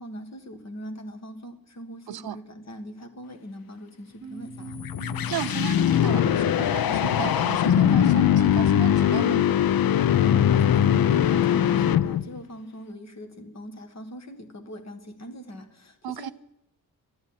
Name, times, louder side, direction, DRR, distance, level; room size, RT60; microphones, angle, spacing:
voice 1, 0.0-4.8 10.1-16.3, equal, 45° left, 1.7 m, -41 dB
voice 2, 2.1-2.4 5.3-9.5 16.0-16.3, right 11 dB, 75° right, 0.5 m, -34 dB
sound 1, 4.2-9.3, right 5 dB, 45° right, 1.0 m, -42 dB
sound 2, 4.6-12.4, left 10 dB, 70° left, 0.6 m, -21 dB
12.0 x 12.0 x 8.7 m
wide cardioid pair, 130°, 37 cm